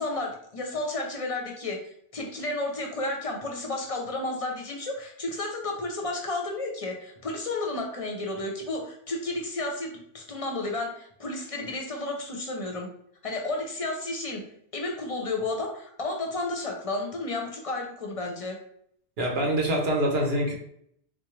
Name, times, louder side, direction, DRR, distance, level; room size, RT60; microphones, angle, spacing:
voice 1, 0.0-1.8 2.1-12.9 13.2-14.4 14.7-18.6, left 2 dB, 40° left, 1 dB, 0.6 m, -32 dB
voice 2, 19.2-20.5, right 1 dB, 70° right, 0 dB, 1.1 m, -25 dB
3.7 x 2.4 x 3.1 m, 0.69 s
omnidirectional pair, 1.1 m